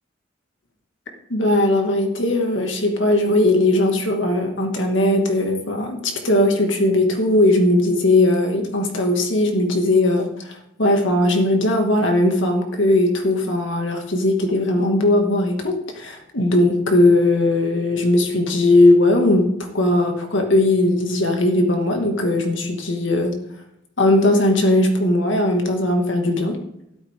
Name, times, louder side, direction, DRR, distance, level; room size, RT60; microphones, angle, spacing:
voice 1, 1.3-19.5 19.7-23.3 24.0-26.6, left 1 dB, 70° left, 3 dB, 2.3 m, -18 dB
13.0 x 12.5 x 3.8 m, 0.80 s
head